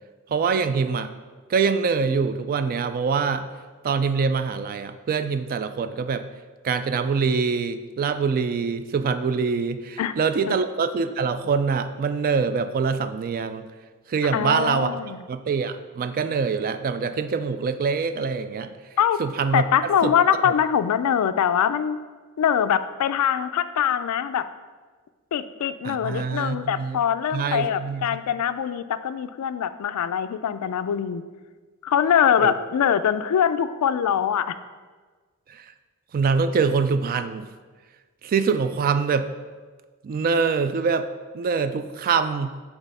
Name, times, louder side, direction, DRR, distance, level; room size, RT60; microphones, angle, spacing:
voice 1, 0.3-1.1 1.5-3.5 3.8-6.2 6.6-13.7 14.1-18.7 19.2-19.6 20.0-20.1 20.4-20.5 25.8-27.0 27.3-28.2 32.4-32.5 35.5-35.7 36.1-37.5 38.2-39.3 40.0-41.1 41.3-42.5, right 5 dB, 40° right, 11 dB, 0.3 m, -24 dB
voice 2, 14.3-15.2 19.0-19.2 19.5-22.0 22.4-24.5 25.3-31.2 31.8-34.5, left 8 dB, 85° left, 13 dB, 0.3 m, -23 dB
6.2 x 3.5 x 5.4 m, 1.4 s
head